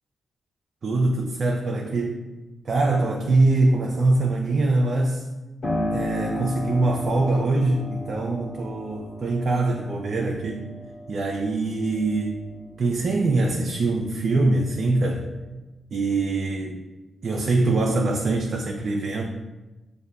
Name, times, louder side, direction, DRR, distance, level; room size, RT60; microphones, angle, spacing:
voice 1, 0.8-2.2 2.6-5.2 5.9-10.7 11.1-12.4 12.8-15.3 15.9-16.8 17.2-19.2, right 2 dB, 60° right, 1 dB, 0.4 m, -23 dB
Piano, 5.6-14.1 14.5-15.5, left 1 dB, 65° left, 1.1 m, -34 dB
6.4 x 2.6 x 2.3 m, 1.1 s
supercardioid pair, 50°, 0 cm